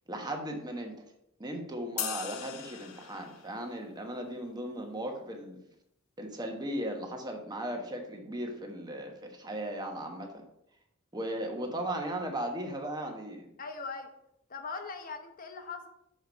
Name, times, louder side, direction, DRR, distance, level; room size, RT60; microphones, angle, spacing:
voice 1, 0.1-1.0 1.4-5.6 6.2-10.4 11.1-13.5, right 1 dB, 20° right, 3 dB, 1.2 m, -37 dB
sound 1, 2.0-3.6, left 9 dB, 75° left, 0.8 m, -38 dB
voice 2, 13.6-14.1 14.5-15.9, left 4 dB, 40° left, 6 dB, 1.0 m, -40 dB
6.6 x 5.1 x 5.1 m, 0.78 s
head